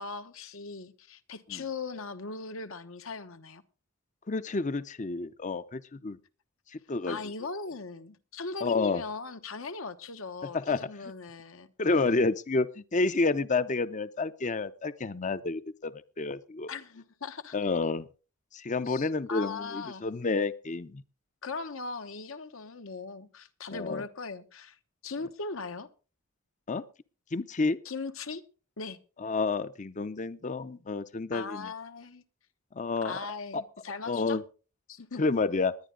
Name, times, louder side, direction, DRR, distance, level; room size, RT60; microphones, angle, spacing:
voice 1, 0.0-3.6 7.1-11.7 16.7-17.5 18.9-20.0 21.4-24.8 25.0-25.9 27.8-28.4 28.8-29.0 31.3-32.2 33.0-34.4 34.9-35.2, left 4 dB, 70° left, 1.1 m, -39 dB
voice 2, 4.3-6.2 6.7-7.2 8.6-9.0 10.5-11.1 11.8-16.7 17.5-18.1 18.5-21.0 23.7-24.0 26.7-26.8 27.3-27.8 29.2-31.7 32.7-33.2 33.5-33.6 34.1-34.4 35.2-35.7, left 3 dB, 35° left, 0.6 m, -30 dB
20.0 x 10.5 x 3.8 m
head